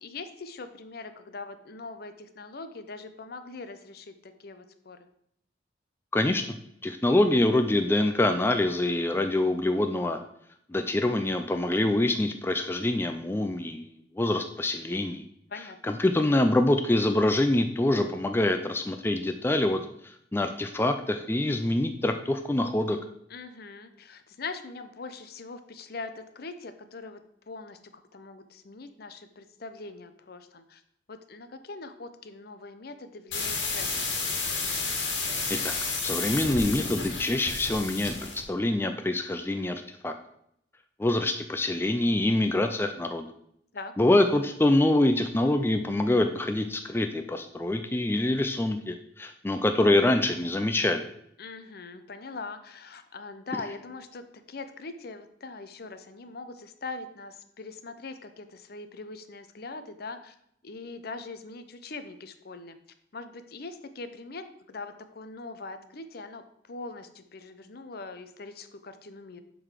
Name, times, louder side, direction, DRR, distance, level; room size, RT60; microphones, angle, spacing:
voice 1, 0.0-5.0 15.5-16.0 23.3-27.2 27.5-27.8 28.1-30.8 31.1-34.5 43.7-43.9 51.4-60.3 60.6-62.8 63.1-69.4, left 3 dB, 55° left, 10 dB, 0.7 m, -42 dB
voice 2, 6.1-6.4 6.8-10.2 10.7-15.2 15.8-23.0 35.5-35.7 36.0-40.1 41.0-43.3 44.0-51.1, left 1 dB, 10° left, 6 dB, 0.4 m, -25 dB
sound 1, 33.3-38.4, left 4 dB, 80° left, 1.8 m, -31 dB
7.7 x 3.9 x 6.5 m, 0.73 s
head